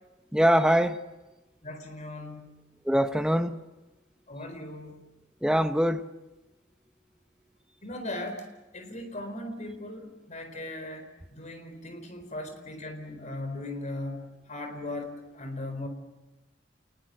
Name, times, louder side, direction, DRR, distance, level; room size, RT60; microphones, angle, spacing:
voice 1, 0.3-1.0 2.8-3.6 5.4-6.0, equal, 5° right, 0.9 m, -23 dB
voice 2, 1.6-2.6 4.3-5.0 7.8-8.5 8.7-11.1 11.3-15.9, left 1 dB, 40° left, 4.4 m, -38 dB
28.5 x 20.0 x 7.8 m
head